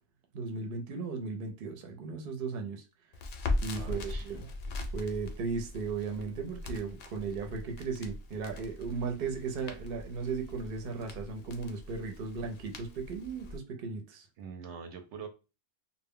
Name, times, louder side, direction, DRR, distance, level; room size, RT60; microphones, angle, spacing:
voice 1, 0.3-2.8 3.6-4.5 4.9-14.3, right 4 dB, 60° right, 0.7 m, -36 dB
Crackle, 3.1-13.6, left 2 dB, 60° left, 0.6 m, -40 dB
voice 2, 3.7-4.3 14.4-15.3, right 6 dB, 85° right, 0.9 m, -44 dB
2.1 x 2.0 x 3.5 m
omnidirectional pair, 1.2 m